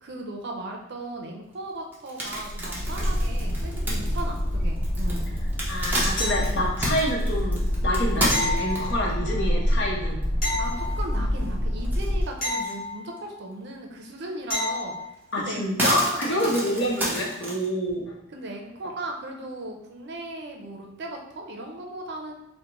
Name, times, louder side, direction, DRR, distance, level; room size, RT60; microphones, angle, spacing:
voice 1, 0.0-5.3 10.6-14.9 15.4-16.5 18.3-22.3, right 1 dB, 60° right, 2 dB, 0.5 m, -37 dB
sound 1, 1.9-9.1 9.7-9.8 10.2-10.3 10.6-11.5 11.8-12.8 13.2-13.3 14.6-14.7 15.1-17.6, right 1 dB, 10° right, 0.7 m, -30 dB
sound 2, 2.3-12.2, equal, 40° right, 1.0 m, -27 dB
voice 2, 5.7-10.2 15.3-18.1, equal, 65° left, -2 dB, 0.8 m, -27 dB
sound 3, 6.2-6.9 8.3-9.4 10.4-11.4 12.4-13.4 14.5-15.1 17.9-18.0, left 2 dB, 45° left, 1.0 m, -31 dB
3.7 x 2.1 x 2.9 m, 0.87 s
head